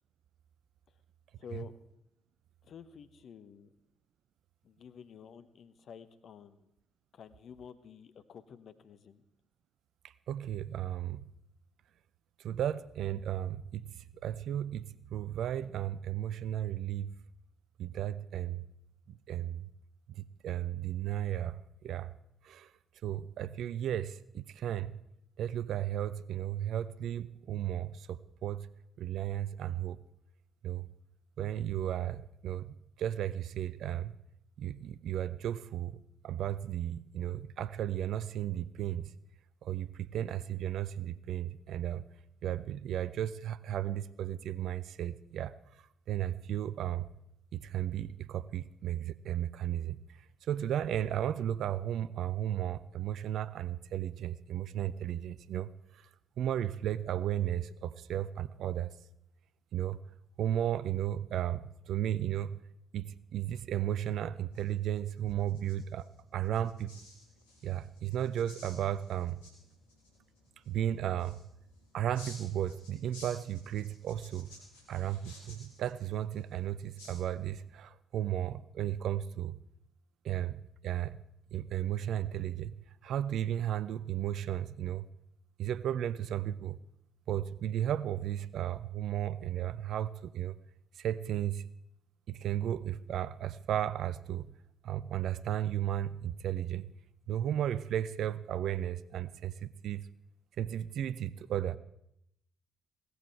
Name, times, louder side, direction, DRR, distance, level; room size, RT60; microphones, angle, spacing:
voice 1, 1.4-1.7 2.6-3.7 4.6-6.7 7.1-9.2, left 7 dB, 55° left, 13 dB, 1.0 m, -50 dB
voice 2, 10.3-11.3 12.4-13.9 14.2-17.1 17.8-18.6 19.1-19.7 20.4-22.1 22.4-22.7 23.0-25.0 25.4-28.7 29.0-30.0 30.6-30.9 31.4-34.2 34.6-36.0 36.2-39.1 39.6-42.0 42.4-45.5 46.1-47.1 47.5-50.0 50.5-55.7 56.4-58.9 59.7-60.0 60.4-62.5 62.9-66.1 66.3-66.9 67.6-69.4 70.7-71.4 71.9-74.5 74.9-79.6 80.2-81.2 81.5-82.7 83.0-85.1 85.6-86.8 87.3-90.6 91.0-91.7 92.3-94.5 94.8-96.9 97.3-100.1 100.6-101.8, right 11 dB, 65° right, 18 dB, 0.5 m, -34 dB
sound 1, 64.4-77.8, left 2 dB, 85° left, 2.4 m, -56 dB
17.0 x 13.5 x 4.6 m, 0.78 s
figure-of-eight pair, 40°, 0 cm